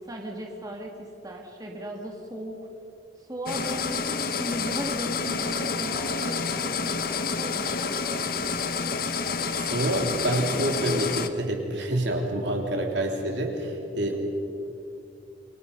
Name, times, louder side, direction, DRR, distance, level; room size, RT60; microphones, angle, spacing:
voice 1, 0.0-2.5 3.2-8.3, equal, 20° right, 0 dB, 2.3 m, -37 dB
sound 1, 3.5-11.3, left 5 dB, 50° left, 1.1 m, -29 dB
voice 2, 9.5-14.2, right 1 dB, 70° right, 2 dB, 3.3 m, -27 dB
28.5 x 24.0 x 5.4 m, 2.7 s
head